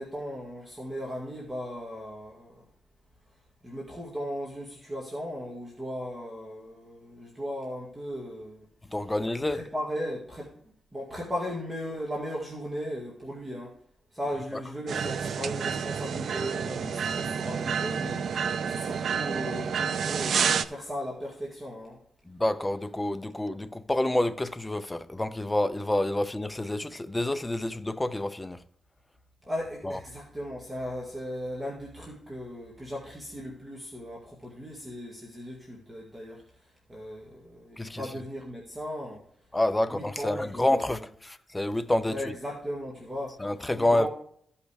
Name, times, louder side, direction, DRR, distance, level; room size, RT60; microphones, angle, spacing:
voice 1, 0.0-2.6 3.6-8.6 9.5-10.5 10.9-13.7 14.1-22.0 29.5-36.4 36.9-39.2 39.8-40.8 42.1-43.4 43.7-44.1, equal, 15° right, 1.9 m, -37 dB
voice 2, 8.9-9.6 22.3-28.6 29.8-30.0 37.8-38.1 39.5-42.3 43.4-44.1, left 1 dB, 10° left, 0.6 m, -28 dB
sound 1, 14.9-20.6, right 6 dB, 65° right, 0.5 m, -29 dB
14.5 x 5.7 x 3.3 m
cardioid pair, 120°, 0 cm